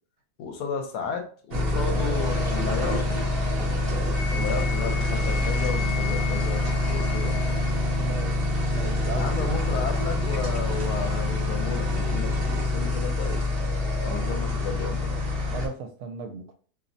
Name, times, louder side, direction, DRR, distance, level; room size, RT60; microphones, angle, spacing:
voice 1, 0.4-3.3 4.3-7.4 9.1-13.4 14.0-15.1, left 5 dB, 75° left, 4 dB, 1.1 m, -33 dB
sound 1, 1.5-15.7, left 2 dB, 55° right, 0.7 m, -26 dB
sound 2, 1.9-12.0, left 2 dB, 50° left, 1.0 m, -46 dB
Wind instrument woodwind instrument, 4.1-7.8, left 8 dB, 25° left, 0.7 m, -37 dB
voice 2, 4.3-4.6 8.0-8.4 8.7-9.6 15.5-16.5, right 5 dB, 80° right, 6 dB, 1.1 m, -36 dB
2.8 x 2.0 x 2.5 m, 0.42 s
omnidirectional pair, 1.7 m